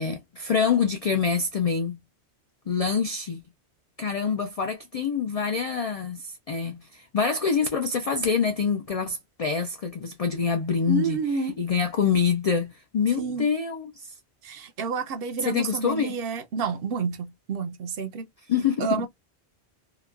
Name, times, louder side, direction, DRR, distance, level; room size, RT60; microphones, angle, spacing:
voice 1, 0.0-2.0 2.7-3.4 4.0-11.2 11.4-14.1 15.4-16.2 18.5-19.1, left 6 dB, 65° left, 0.3 m, -26 dB
voice 2, 10.9-11.6 13.2-13.5 14.4-18.2 18.8-19.1, right 5 dB, 65° right, 0.7 m, -29 dB
2.9 x 2.1 x 2.3 m
omnidirectional pair, 1.1 m